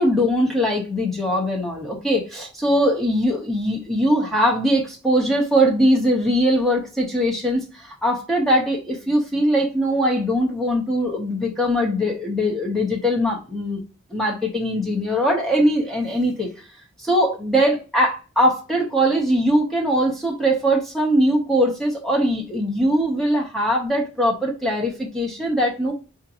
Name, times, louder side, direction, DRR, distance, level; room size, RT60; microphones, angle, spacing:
voice 1, 0.0-13.8 14.1-16.5 17.0-25.9, equal, ahead, -1 dB, 0.7 m, -21 dB
5.0 x 2.5 x 2.8 m, 0.33 s
head